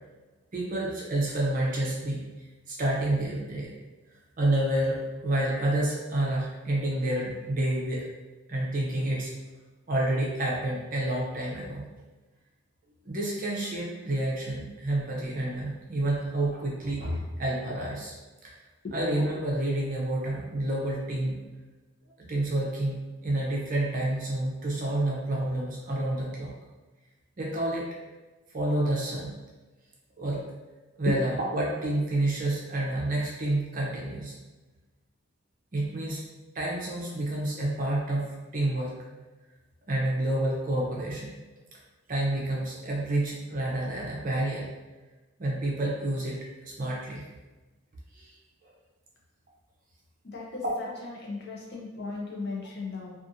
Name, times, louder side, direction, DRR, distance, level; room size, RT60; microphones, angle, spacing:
voice 1, 0.5-2.2 2.7-3.7 4.4-8.0 8.5-9.3 9.9-11.8 13.0-18.1 18.4-18.5 18.9-21.4 22.2-26.5 27.4-27.9 28.5-29.3 30.2-30.5 31.0-34.3 35.7-36.2 36.5-38.9 39.9-41.4 42.1-44.7 45.4-46.4 46.7-47.2 48.1-48.3 48.6-48.7 50.6-50.7, right 1 dB, 40° right, -4 dB, 0.6 m, -29 dB
voice 2, 50.3-53.1, left 3 dB, 50° left, -4 dB, 0.6 m, -37 dB
2.5 x 2.4 x 2.6 m, 1.2 s
head